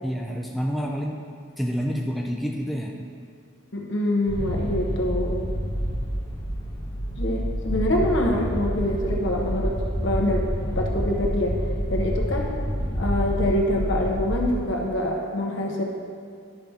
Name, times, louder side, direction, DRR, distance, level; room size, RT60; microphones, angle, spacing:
voice 1, 0.0-1.2 1.6-2.9, equal, ahead, 0 dB, 0.4 m, -28 dB
voice 2, 3.7-5.5 7.2-10.4 10.7-11.6 11.9-12.5 12.9-15.8, left 1 dB, 65° left, 0 dB, 1.1 m, -25 dB
sound 1, 4.3-14.6, equal, 20° left, 0.9 m, -28 dB
10.5 x 5.8 x 3.6 m, 2.3 s
head